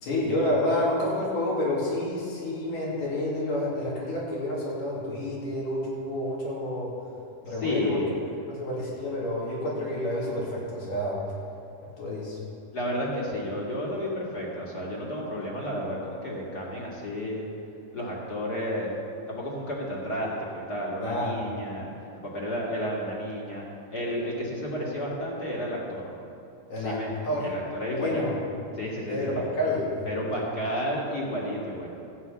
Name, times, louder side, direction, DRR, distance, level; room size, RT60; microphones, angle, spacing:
voice 1, 0.0-6.9 7.4-8.0 8.4-11.2 12.0-12.4 21.0-21.4 26.7-27.0 27.2-27.5 27.9-28.3 29.1-29.9 30.3-30.4, left 1 dB, 85° left, -6 dB, 4.6 m, -29 dB
voice 2, 7.4-8.1 12.7-17.4 17.9-19.0 19.3-21.9 22.1-23.6 23.9-26.1 26.8-27.1 27.4-28.2 28.7-29.5 30.1-31.9, equal, 35° left, -4 dB, 2.2 m, -32 dB
13.5 x 9.0 x 5.8 m, 2.6 s
omnidirectional pair, 3.6 m